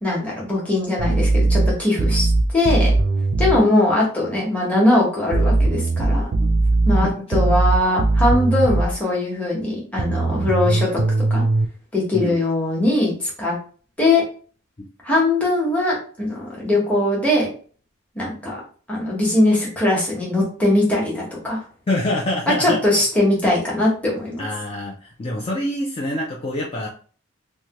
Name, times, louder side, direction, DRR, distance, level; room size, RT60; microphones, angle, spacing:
voice 1, 0.0-2.9 3.4-6.3 6.8-11.0 11.3-11.4 11.9-13.5 14.0-14.2 15.0-17.5 18.1-18.6 18.9-21.6 22.5-24.5, left 2 dB, 5° left, -5 dB, 1.0 m, -20 dB
sound 1, 1.0-3.6 5.3-8.9 10.0-11.6, right 2 dB, 70° right, 0.4 m, -19 dB
voice 2, 21.9-22.8 23.4-23.5 24.4-26.9, left 1 dB, 30° left, -2 dB, 0.4 m, -26 dB
3.2 x 2.2 x 2.9 m, 0.41 s
head